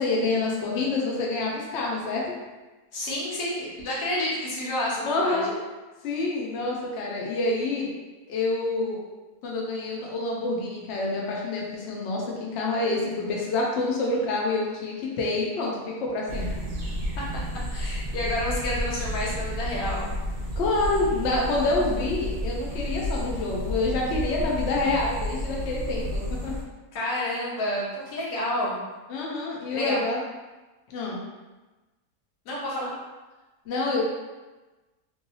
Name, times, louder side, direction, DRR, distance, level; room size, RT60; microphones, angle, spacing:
voice 1, 0.0-2.2 5.1-5.5 6.0-7.9 8.3-9.0 9.4-16.5 20.6-26.5 29.1-30.2 30.9-31.2 33.7-34.0, left 2 dB, 60° left, -3 dB, 0.8 m, -27 dB
voice 2, 2.9-5.4 17.1-17.2 17.7-20.2 26.9-28.8 29.7-30.0 32.4-32.9, left 1 dB, 85° left, -5 dB, 1.5 m, -29 dB
sound 1, 16.3-26.6, equal, 65° right, 0.3 m, -31 dB
3.1 x 2.6 x 2.7 m, 1.2 s
omnidirectional pair, 1.7 m